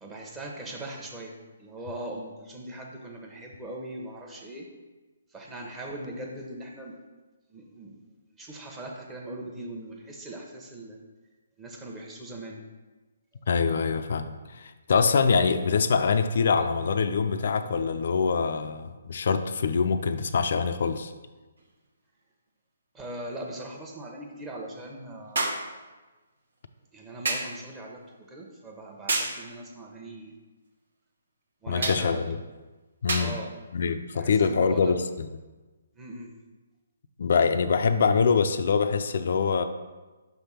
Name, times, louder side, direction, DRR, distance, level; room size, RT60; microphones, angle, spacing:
voice 1, 0.0-1.3 1.6-4.7 5.3-7.0 7.5-8.0 8.4-11.0 11.6-12.6 22.9-25.6 26.9-30.3 31.6-32.2 33.2-33.5 34.1-35.0 35.9-36.3, right 1 dB, 15° right, -1 dB, 0.9 m, -40 dB
voice 2, 13.5-21.1 31.7-32.4 33.0-33.4 33.7-35.3 37.2-39.6, left 5 dB, 60° left, 9 dB, 0.4 m, -24 dB
sound 1, 21.6-21.7 25.4-25.7 27.3-27.6 29.1-29.4 31.8-32.1 33.1-33.4 34.4-34.6, right 2 dB, 70° right, 0.9 m, -28 dB
5.9 x 3.5 x 5.6 m, 1.2 s
hypercardioid pair, 145°, 0 cm